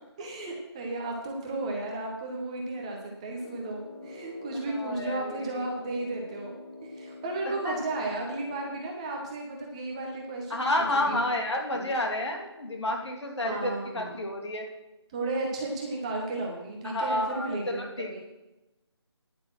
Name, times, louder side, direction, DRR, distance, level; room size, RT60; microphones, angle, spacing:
voice 1, 0.2-6.5 6.8-11.2 11.7-11.8 13.4-14.2 15.1-18.2, right 2 dB, 15° right, 0 dB, 1.1 m, -34 dB
Brass instrument, 3.3-8.9, left 2 dB, 20° left, 1.5 m, -46 dB
voice 2, 4.7-5.6 7.6-7.8 10.5-14.7 16.8-18.2, left 1 dB, 75° left, 1 dB, 3.0 m, -30 dB
10.5 x 8.3 x 6.2 m, 1.0 s
figure-of-eight pair, 170°, 15 cm